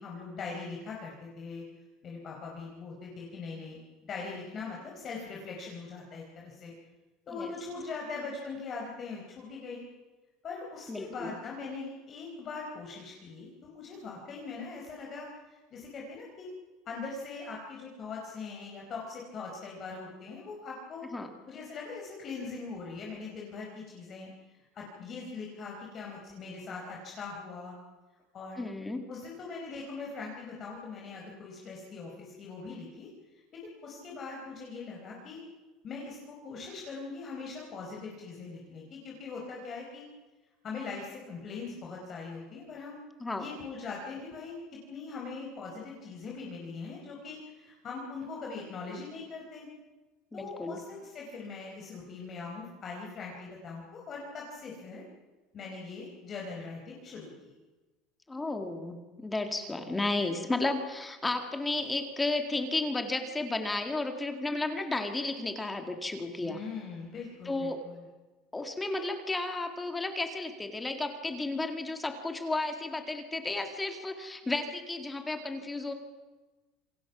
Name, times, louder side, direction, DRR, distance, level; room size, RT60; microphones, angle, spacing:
voice 1, 0.0-1.6 2.0-6.7 7.3-9.8 10.4-16.5 16.8-21.0 21.5-24.3 24.7-27.7 28.3-28.6 29.1-33.1 33.5-35.4 35.8-40.1 40.6-43.0 43.4-49.7 50.3-55.0 55.5-57.5 66.4-68.0, left 4 dB, 30° left, -2 dB, 4.4 m, -41 dB
voice 2, 10.9-11.4 21.1-21.3 28.6-29.1 43.2-43.5 50.3-50.8 58.3-66.6 67.5-67.8 68.5-75.9, left 2 dB, 10° left, 5 dB, 2.0 m, -33 dB
27.5 x 24.0 x 6.0 m, 1.2 s
cardioid pair, 165°, 0 cm